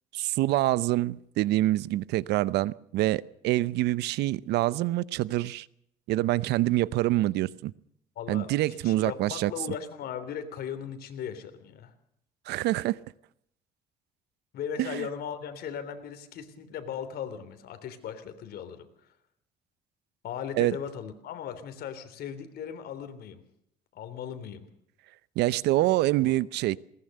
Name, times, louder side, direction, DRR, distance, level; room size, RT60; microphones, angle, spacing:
voice 1, 0.1-5.7 6.1-7.7 8.3-9.5 12.5-13.0 14.8-15.1 20.6-20.8 25.4-26.8, right 16 dB, 80° right, 0.7 m, -26 dB
voice 2, 8.1-11.9 14.5-18.9 20.2-23.4 23.9-24.7 26.2-26.3, left 8 dB, 65° left, 3.3 m, -38 dB
20.5 x 19.0 x 6.6 m
cardioid pair, 110°, 17 cm